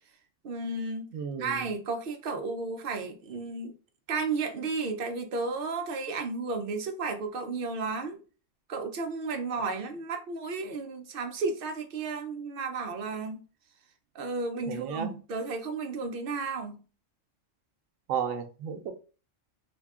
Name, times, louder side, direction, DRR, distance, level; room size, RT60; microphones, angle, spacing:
voice 1, 0.4-1.1 1.4-3.7 4.1-8.2 8.7-13.4 14.1-16.8, right 4 dB, 55° right, 0.7 m, -33 dB
voice 2, 1.1-1.6 14.7-15.1 18.1-18.9, right 7 dB, 85° right, 1.0 m, -33 dB
3.4 x 2.2 x 3.5 m
omnidirectional pair, 1.3 m